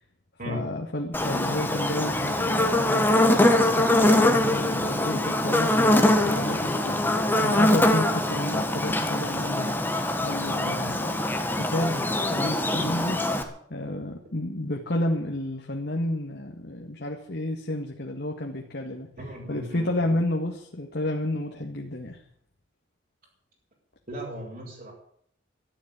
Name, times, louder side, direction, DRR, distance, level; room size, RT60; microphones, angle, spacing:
voice 1, 0.5-9.8 10.2-11.2 11.6-13.2 13.7-19.1 19.5-22.2, left 1 dB, 60° left, 1 dB, 1.9 m, -31 dB
Buzz, 1.1-13.4, left 1 dB, 10° left, 1.8 m, -23 dB
voice 2, 19.2-20.2 24.1-24.9, equal, 50° right, -2 dB, 5.3 m, -37 dB
13.0 x 10.5 x 9.7 m, 0.64 s
head